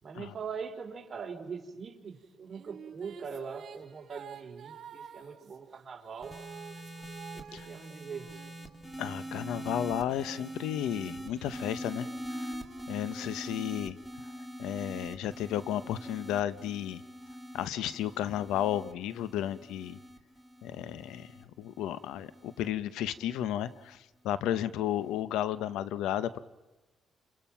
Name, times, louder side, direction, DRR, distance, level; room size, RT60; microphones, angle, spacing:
voice 1, 0.0-6.4 7.3-8.4, right 6 dB, 40° right, 2 dB, 3.8 m, -42 dB
sound 1, 2.2-9.2 9.8-13.6, right 7 dB, 65° right, 2.8 m, -51 dB
sound 2, 6.2-22.7 23.6-24.0, equal, ahead, 2.8 m, -43 dB
voice 2, 9.0-12.1 12.4-12.5 12.9-14.0 14.6-17.0 17.5-20.0 20.6-26.4, left 11 dB, 90° left, 15 dB, 0.9 m, -33 dB
29.5 x 27.5 x 5.9 m, 1.1 s
cardioid pair, 90°, 0 cm